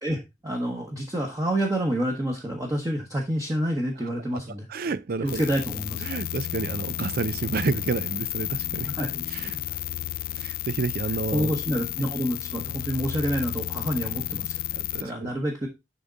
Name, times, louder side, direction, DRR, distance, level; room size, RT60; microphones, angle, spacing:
voice 1, 0.0-4.7 5.2-6.2 8.9-9.2 11.3-14.6 15.0-15.7, equal, 20° right, 1.2 m, -28 dB
voice 2, 4.0-5.4 6.0-9.0 9.3-9.6 10.4-11.5 12.0-12.1 14.7-15.3, right 4 dB, 55° right, 0.4 m, -30 dB
sound 1, 5.3-15.0, left 13 dB, 55° left, 0.3 m, -32 dB
11.0 x 3.6 x 3.9 m
head